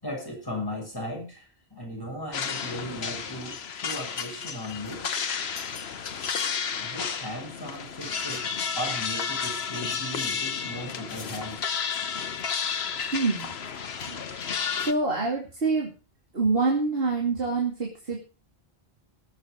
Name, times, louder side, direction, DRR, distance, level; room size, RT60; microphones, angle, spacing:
voice 1, 0.0-5.1 6.8-8.5 8.8-11.6, equal, 20° left, -1 dB, 6.8 m, -37 dB
sound 1, 2.3-14.9, left 6 dB, 80° left, 1.2 m, -32 dB
voice 2, 13.1-13.6 14.1-14.2 14.7-15.9 16.3-18.2, right 3 dB, 65° right, -1 dB, 2.9 m, -26 dB
19.0 x 8.0 x 5.1 m, 0.35 s
omnidirectional pair, 1.1 m